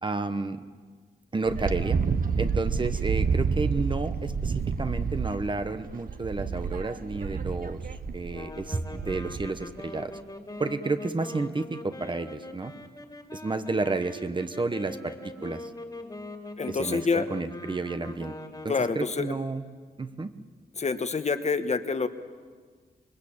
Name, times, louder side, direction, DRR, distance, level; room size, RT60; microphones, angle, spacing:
voice 1, 0.0-0.6 1.3-2.0 2.4-7.8 8.1-10.1 10.6-12.7 13.3-15.7 16.7-18.4 18.6-19.6 20.0-20.3, right 3 dB, 30° right, 10 dB, 1.0 m, -31 dB
Wind, 1.4-9.6, right 5 dB, 60° right, 1.1 m, -29 dB
sound 1, 8.3-19.3, left 2 dB, 25° left, 2.3 m, -42 dB
voice 2, 16.6-17.3 18.7-19.4 20.8-22.1, left 4 dB, 45° left, 9 dB, 1.2 m, -27 dB
25.5 x 21.5 x 8.7 m, 1.5 s
wide cardioid pair, 125°, 17 cm